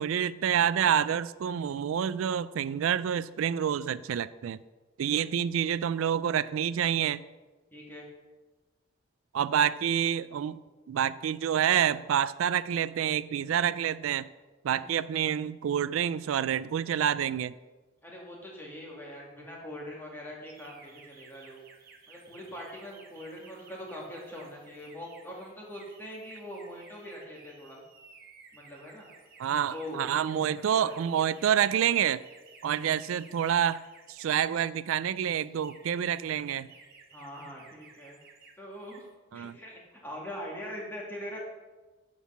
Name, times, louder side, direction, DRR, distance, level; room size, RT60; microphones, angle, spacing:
voice 1, 0.0-4.6 5.0-7.2 9.3-10.6 10.9-14.3 14.6-17.5 29.4-32.2 32.6-33.8 34.1-36.7 39.3-39.6, right 9 dB, 90° right, 17 dB, 0.3 m, -28 dB
voice 2, 5.0-5.3 7.7-8.1 14.7-15.0 18.0-21.6 22.1-27.8 28.5-29.1 29.7-30.0 30.3-30.9 32.7-33.0 37.1-38.2 38.6-41.4, equal, 10° left, -3 dB, 2.3 m, -43 dB
sound 1, 20.5-34.8 35.4-38.6 38.8-39.1, right 5 dB, 50° right, 1.3 m, -56 dB
9.4 x 6.4 x 5.8 m, 1.2 s
head